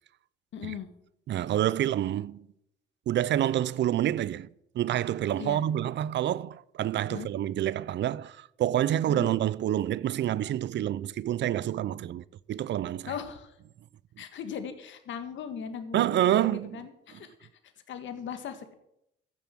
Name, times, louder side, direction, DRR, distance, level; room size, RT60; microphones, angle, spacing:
voice 1, 0.5-0.9 5.4-5.6 7.1-7.3 9.1-9.3 13.1-13.5 14.2-17.5 17.9-18.7, left 8 dB, 70° left, 1.8 m, -38 dB
voice 2, 1.3-2.5 3.1-4.5 4.7-13.1 15.9-16.7, right 12 dB, 65° right, 0.6 m, -28 dB
14.5 x 7.0 x 7.5 m
cardioid pair, 90°, 20 cm